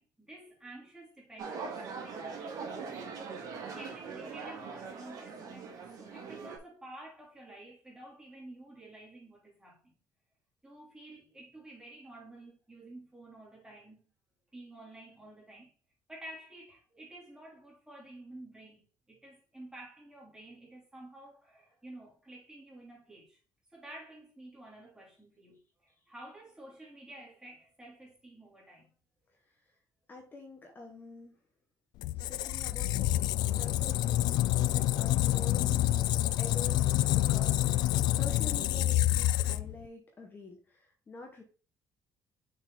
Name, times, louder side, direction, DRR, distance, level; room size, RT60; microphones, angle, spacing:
voice 1, 0.0-3.0 3.4-9.9 10.6-14.1 14.5-15.7 16.1-23.4 23.7-28.9, right 1 dB, 10° right, 3.1 m, -51 dB
sound 1, 1.4-6.6, right 5 dB, 60° right, 2.3 m, -41 dB
voice 2, 30.1-31.4 32.1-33.2 33.5-36.0 36.4-41.4, left 2 dB, 30° left, 1.3 m, -47 dB
Squeak, 32.0-39.9, left 14 dB, 85° left, 0.3 m, -28 dB
6.5 x 4.5 x 3.9 m
cardioid pair, 125°, 7 cm